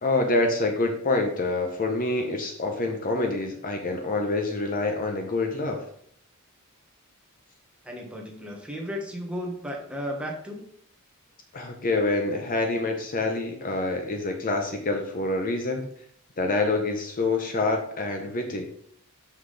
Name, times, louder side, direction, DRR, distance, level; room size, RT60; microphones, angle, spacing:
voice 1, 0.0-5.8 11.5-15.9 16.4-18.7, left 2 dB, 40° left, 4 dB, 0.7 m, -26 dB
voice 2, 7.8-10.7, equal, 5° right, -1 dB, 1.2 m, -34 dB
5.8 x 5.6 x 3.3 m, 0.65 s
head